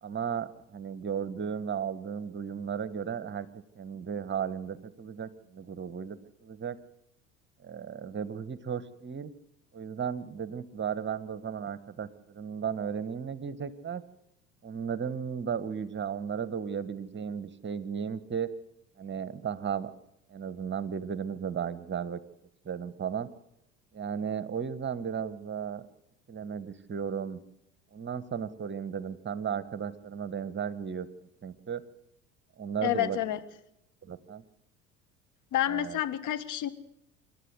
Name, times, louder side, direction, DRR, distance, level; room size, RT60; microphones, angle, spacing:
voice 1, 0.0-3.5 3.7-6.8 7.6-9.3 9.7-14.0 14.6-18.5 19.0-19.9 20.3-22.2 22.6-23.3 23.9-25.9 26.3-27.4 27.9-31.8 32.6-33.2 34.0-34.4 35.7-36.0, right 7 dB, 30° right, 16 dB, 1.5 m, -35 dB
voice 2, 32.8-33.4 35.5-36.7, left 12 dB, 50° left, 10 dB, 1.7 m, -29 dB
27.5 x 12.5 x 8.0 m, 0.80 s
figure-of-eight pair, 65°, 40 cm